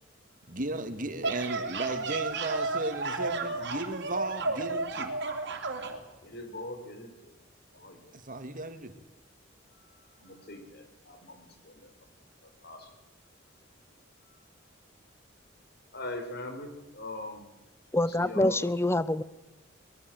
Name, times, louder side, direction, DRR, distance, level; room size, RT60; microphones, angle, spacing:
voice 1, 0.5-5.2 8.1-8.9, right 2 dB, 45° right, 9 dB, 2.3 m, -35 dB
sound 1, 1.0-6.0, right 3 dB, 60° right, 3.1 m, -32 dB
voice 2, 6.2-7.4 7.7-8.2 9.7-11.9 12.4-12.9 13.5-13.6 14.2-14.5 15.9-17.5 17.9-18.6, left 1 dB, 55° left, 6 dB, 5.0 m, -42 dB
voice 3, 17.9-19.2, left 1 dB, 15° left, 17 dB, 0.9 m, -26 dB
23.0 x 21.5 x 7.9 m, 1.0 s
head